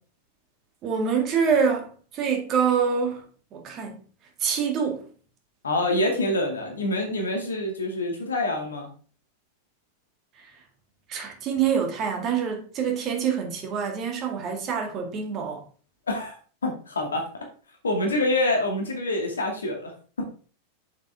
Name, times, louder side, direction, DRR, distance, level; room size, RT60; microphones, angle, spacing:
voice 1, 0.8-3.2 3.5-4.0 4.4-5.0 10.4-10.5 11.1-15.6, right 6 dB, 35° right, 2.1 m, -26 dB
voice 2, 5.6-8.9 16.1-16.4 16.6-17.3 17.8-19.9 20.2-20.3, left 1 dB, 70° left, 2.2 m, -26 dB
7.4 x 7.2 x 3.5 m
figure-of-eight pair, 90°, 0 cm